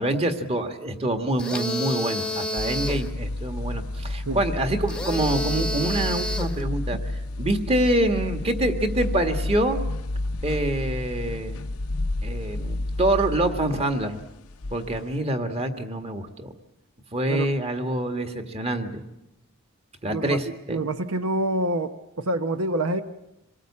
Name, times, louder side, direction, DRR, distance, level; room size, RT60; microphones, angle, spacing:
voice 1, 0.0-7.0 7.4-9.8 10.4-11.6 12.2-14.2 14.7-16.5 17.1-19.0 20.0-20.8, right 1 dB, 25° right, 1.7 m, -26 dB
sound 1, 1.4-3.1 4.9-6.6, left 1 dB, 5° left, 1.1 m, -30 dB
sound 2, 2.6-15.2, left 2 dB, 90° left, 0.8 m, -31 dB
voice 2, 20.7-23.0, right 2 dB, 75° right, 0.9 m, -26 dB
26.5 x 19.0 x 8.6 m
head